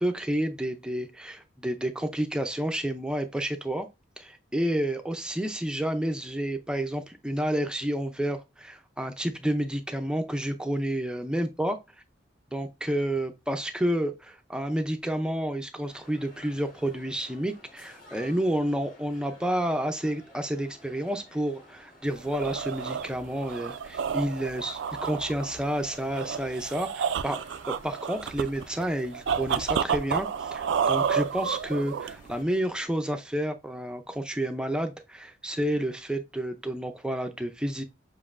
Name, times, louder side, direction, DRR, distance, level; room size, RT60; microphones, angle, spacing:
voice 1, 0.0-3.9 4.2-11.8 12.5-27.4 27.7-37.8, right 1 dB, 5° right, 0.4 m, -30 dB
sound 1, 15.9-32.9, left 1 dB, 45° left, 1.9 m, -53 dB
sound 2, 22.1-32.4, right 7 dB, 75° right, 0.3 m, -30 dB
7.2 x 2.5 x 2.5 m
head